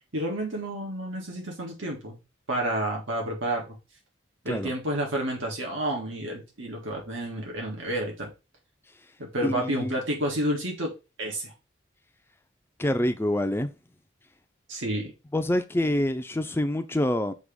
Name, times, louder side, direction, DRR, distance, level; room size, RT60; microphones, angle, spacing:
voice 1, 0.1-2.2 2.5-3.6 4.5-8.3 9.2-10.9 11.2-11.5 14.7-15.1, right 1 dB, 85° right, 1.8 m, -30 dB
voice 2, 9.4-10.0 12.8-13.7 15.3-17.3, left 1 dB, 10° left, 0.5 m, -26 dB
6.2 x 3.0 x 5.0 m
head